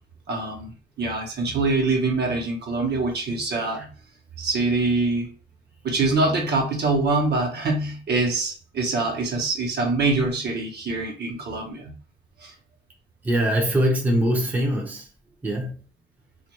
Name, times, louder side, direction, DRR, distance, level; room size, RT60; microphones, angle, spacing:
voice 1, 0.3-3.9 4.4-5.3 5.8-11.9 12.4-12.5, right 3 dB, 55° right, 0.9 m, -24 dB
voice 2, 13.2-15.0 15.4-15.7, equal, 10° right, 0.7 m, -22 dB
2.4 x 2.2 x 2.9 m
cardioid pair, 90°, 20 cm